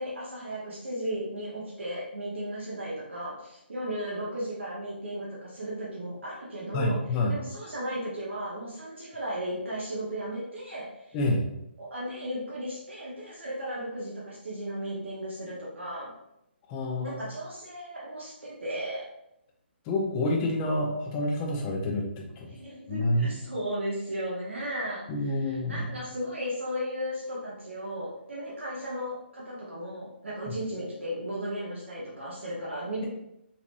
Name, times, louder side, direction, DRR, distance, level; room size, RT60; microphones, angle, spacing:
voice 1, 0.0-7.0 7.3-11.2 11.8-16.1 17.0-19.1 22.5-25.0 25.4-33.1, equal, 85° right, -6 dB, 1.2 m, -35 dB
voice 2, 6.7-7.4 11.1-11.4 16.7-17.2 19.8-22.5 22.9-23.4 25.1-25.9 30.5-30.6, left 1 dB, 25° left, 0 dB, 0.7 m, -28 dB
4.0 x 2.9 x 2.6 m, 0.82 s
hypercardioid pair, 145°, 6 cm